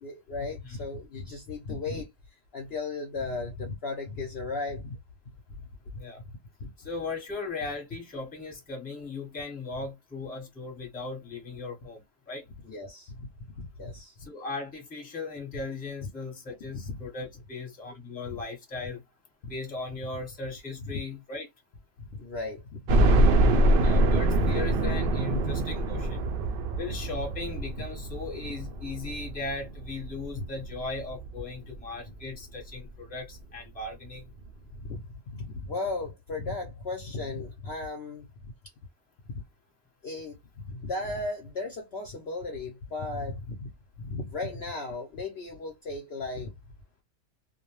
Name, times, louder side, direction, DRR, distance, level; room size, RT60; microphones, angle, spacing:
voice 1, 0.0-5.0 6.6-6.7 12.6-13.3 13.6-14.2 16.9-17.0 18.3-18.4 19.4-19.5 20.8-20.9 22.0-22.6 23.5-24.5 25.3-25.4 27.8-27.9 30.4-30.5 34.8-35.0 35.3-38.5 40.0-43.7 44.0-46.5, left 3 dB, 60° left, 0.7 m, -36 dB
voice 2, 6.8-12.4 14.2-19.0 19.5-21.5 23.8-26.2 26.8-34.2, left 3 dB, 5° left, 0.9 m, -37 dB
sound 1, 22.9-31.8 32.3-32.4 32.7-32.8 34.0-34.1 34.4-34.5, right 1 dB, 85° right, 0.4 m, -25 dB
2.4 x 2.1 x 3.0 m
omnidirectional pair, 1.5 m